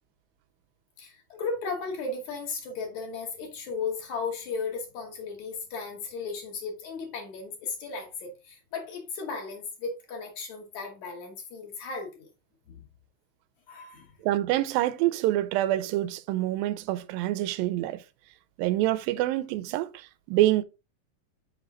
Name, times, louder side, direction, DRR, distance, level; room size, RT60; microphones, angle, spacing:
voice 1, 1.0-12.3 12.7-12.8 13.7-14.1, left 4 dB, 60° left, 2.6 m, -35 dB
voice 2, 14.2-18.0 18.6-20.6, right 15 dB, 90° right, 2.3 m, -26 dB
6.2 x 4.8 x 3.8 m
omnidirectional pair, 4.0 m